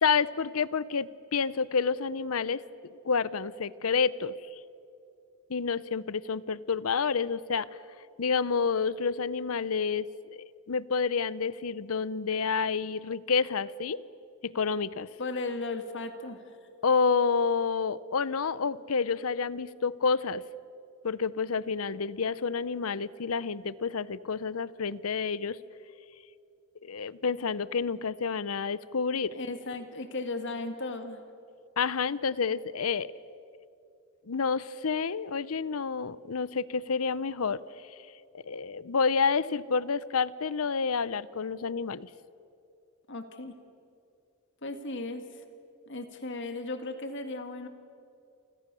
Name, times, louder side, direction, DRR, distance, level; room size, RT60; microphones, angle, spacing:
voice 1, 0.0-2.6 3.0-4.4 5.5-7.7 8.2-10.1 10.3-14.0 14.4-15.1 16.8-20.4 21.0-25.6 26.8-29.3 31.8-33.1 34.3-37.6 38.3-42.1, left 5 dB, 80° left, 18 dB, 0.7 m, -29 dB
voice 2, 15.2-16.4 29.3-31.2 43.1-43.5 44.6-45.4 45.9-47.7, left 2 dB, 60° left, 7 dB, 2.1 m, -36 dB
29.5 x 25.5 x 6.9 m, 2.6 s
head